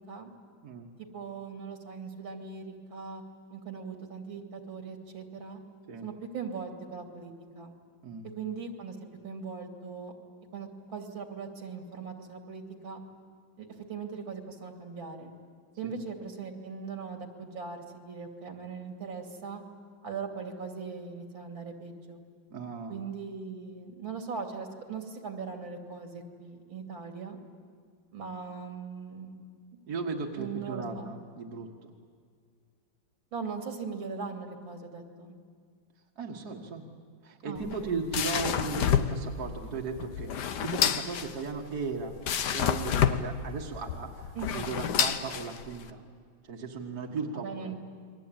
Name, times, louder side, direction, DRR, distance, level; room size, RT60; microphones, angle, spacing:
voice 1, 1.0-3.2 3.5-5.6 6.0-7.7 8.3-10.1 10.5-13.0 13.6-15.3 15.8-19.6 20.0-22.2 22.9-27.4 28.1-29.3 30.3-31.2 33.3-35.3 37.4-37.9 44.3-44.7 47.3-47.8, right 5 dB, 75° right, 4 dB, 3.4 m, -40 dB
voice 2, 22.5-23.0 29.9-31.9 36.2-36.8 37.2-42.2 42.5-46.0 46.4-47.7, right 4 dB, 50° right, 0 dB, 2.2 m, -36 dB
sound 1, 37.6-45.9, left 8 dB, 60° left, 1.5 m, -29 dB
29.5 x 22.5 x 8.9 m, 2.1 s
omnidirectional pair, 2.2 m